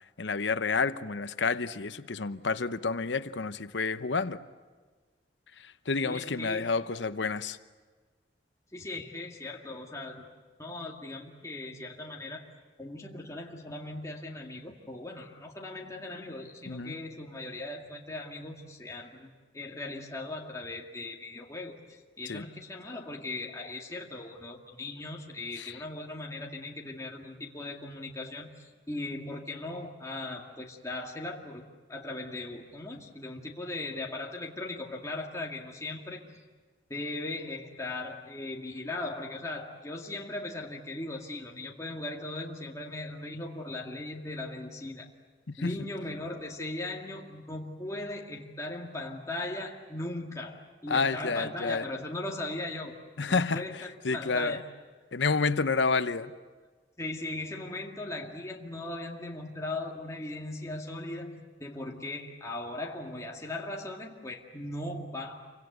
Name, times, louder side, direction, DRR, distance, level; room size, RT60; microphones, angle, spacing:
voice 1, 0.2-4.4 5.9-7.6 16.7-17.0 22.3-22.4 25.6-25.7 45.5-45.7 50.9-51.8 53.2-53.6 54.0-54.6 55.1-56.3, left 4 dB, 75° left, 12 dB, 0.9 m, -29 dB
voice 2, 6.0-6.8 8.7-10.3 10.6-12.5 12.8-31.6 31.9-36.2 36.9-45.1 45.6-52.9 53.3-54.7 57.0-65.5, left 2 dB, 15° left, -1 dB, 2.2 m, -38 dB
28.5 x 24.5 x 8.1 m, 1.4 s
head